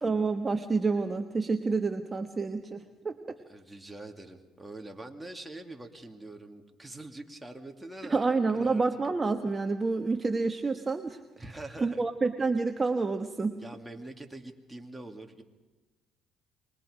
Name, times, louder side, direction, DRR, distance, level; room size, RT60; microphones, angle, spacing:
voice 1, 0.0-3.3 8.1-11.2 11.8-13.6, right 4 dB, 25° right, 5 dB, 1.2 m, -28 dB
voice 2, 3.5-8.8 11.4-12.1 13.6-15.4, right 2 dB, 5° right, 3 dB, 2.5 m, -44 dB
26.5 x 22.0 x 5.1 m, 1.2 s
cardioid pair, 90°, 0 cm